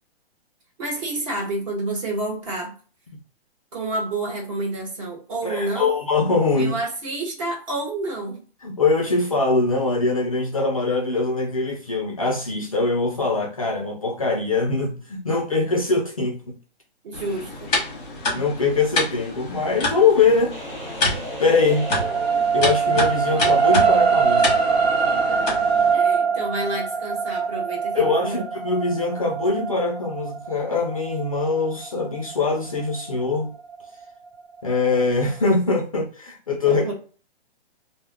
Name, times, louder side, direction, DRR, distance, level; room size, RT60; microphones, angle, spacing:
voice 1, 0.8-2.7 3.7-5.9 6.5-8.4 17.0-17.7 25.9-28.4 36.6-36.9, right 2 dB, 30° right, 1.0 m, -29 dB
voice 2, 5.4-6.8 8.6-16.5 18.3-20.6 21.4-21.9 22.5-24.5 27.9-33.5 34.6-36.9, left 3 dB, 35° left, 0.4 m, -22 dB
sound 1, 17.1-25.9, left 2 dB, 10° left, 0.8 m, -28 dB
sound 2, 20.5-23.1, right 1 dB, 10° right, 0.6 m, -38 dB
sound 3, 20.7-33.2 33.7-33.8, right 5 dB, 65° right, 1.2 m, -23 dB
2.2 x 2.1 x 3.3 m
hypercardioid pair, 170°, 32 cm